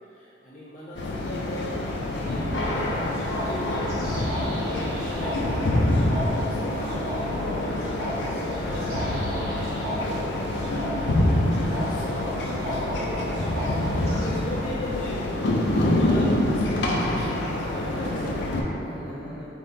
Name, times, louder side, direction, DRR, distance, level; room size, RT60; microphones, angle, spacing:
voice 1, 0.0-2.9 3.3-4.5 4.9-10.2 10.5-12.8 13.5-18.5 18.9-19.0, equal, 45° left, -11 dB, 1.2 m, -39 dB
sound 1, 0.9-18.6, left 1 dB, 65° left, 0.4 m, -26 dB
sound 2, 2.5-14.2, equal, 55° right, 1.0 m, -33 dB
voice 2, 4.5-4.9 8.7-9.1 11.4-12.0 17.9-19.5, equal, 5° right, -14 dB, 1.2 m, -38 dB
4.0 x 3.6 x 2.6 m, 2.9 s
head